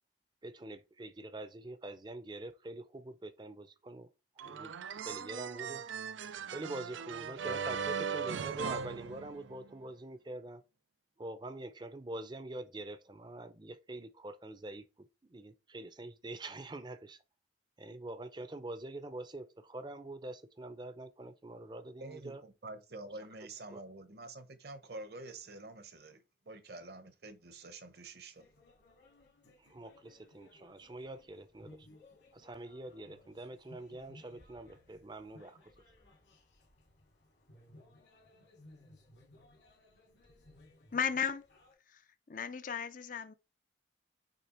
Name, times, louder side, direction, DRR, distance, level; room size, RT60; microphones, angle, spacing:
voice 1, 0.4-4.1 4.4-4.7 5.0-5.8 6.5-10.6 11.2-14.9 15.2-17.2 17.8-22.4 23.4-23.8 29.6-31.9 32.3-35.7, right 2 dB, 25° right, 0.6 m, -45 dB
sound 1, 4.4-9.8, right 6 dB, 90° right, 0.4 m, -39 dB
voice 2, 22.0-28.5, right 2 dB, 60° right, 1.0 m, -48 dB
sound 2, 28.4-41.7, left 1 dB, 75° left, 2.3 m, -61 dB
voice 3, 40.9-41.4 41.9-42.0 42.3-43.3, left 7 dB, 45° left, 0.5 m, -35 dB
6.7 x 3.3 x 4.4 m
head